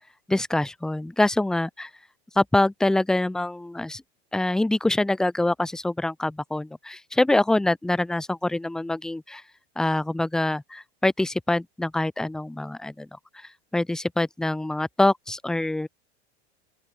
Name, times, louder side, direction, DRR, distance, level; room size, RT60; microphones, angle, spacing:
voice 1, 0.3-1.9 2.4-4.0 4.3-9.4 9.8-13.1 13.3-15.9, left 2 dB, ahead, 0.3 m, -25 dB
open air
hypercardioid pair, 95°, 32 cm